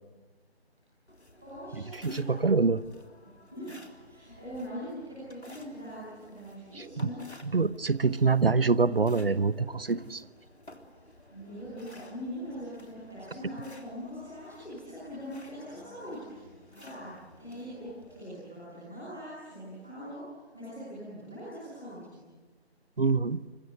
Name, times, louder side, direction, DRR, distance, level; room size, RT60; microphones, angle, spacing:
sound 1, 1.1-18.2, left 1 dB, 85° left, 3.6 m, -54 dB
voice 1, 1.4-2.3 3.5-7.1 10.9-22.2, equal, ahead, -11 dB, 0.8 m, -42 dB
voice 2, 1.9-2.8 6.7-7.1 7.4-10.3 23.0-23.4, right 4 dB, 60° right, 17 dB, 1.0 m, -25 dB
29.0 x 25.0 x 7.9 m, 1.3 s
figure-of-eight pair, 165°, 33 cm